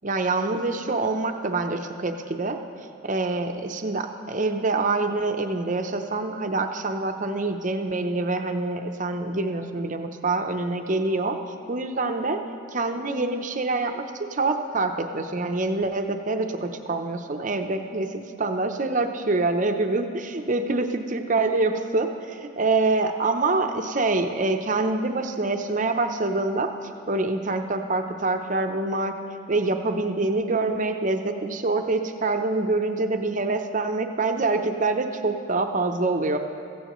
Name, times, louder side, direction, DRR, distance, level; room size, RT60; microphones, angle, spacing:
voice 1, 0.0-2.6 3.0-11.4 11.7-12.4 12.7-14.0 14.3-26.7 27.1-29.1 29.5-36.4, right 3 dB, 35° right, 5 dB, 0.7 m, -25 dB
15.5 x 15.5 x 3.1 m, 2.4 s
head